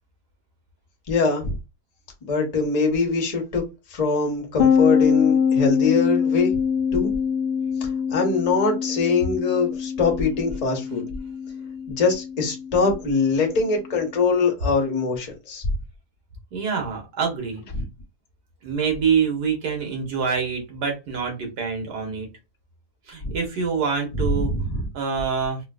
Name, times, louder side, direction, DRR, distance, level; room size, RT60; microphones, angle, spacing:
voice 1, 1.1-1.5 2.2-3.6 3.9-6.5 6.9-7.1 7.8-11.0 11.9-15.6 17.7-17.8 23.2-23.3 24.1-24.8, left 4 dB, 35° left, 0.7 m, -23 dB
sound 1, 4.6-14.1, left 7 dB, 65° left, 0.9 m, -24 dB
voice 2, 16.5-17.6 18.6-22.3 23.1-24.5 24.9-25.6, right 6 dB, 75° right, 1.6 m, -25 dB
3.8 x 2.3 x 2.3 m
omnidirectional pair, 1.8 m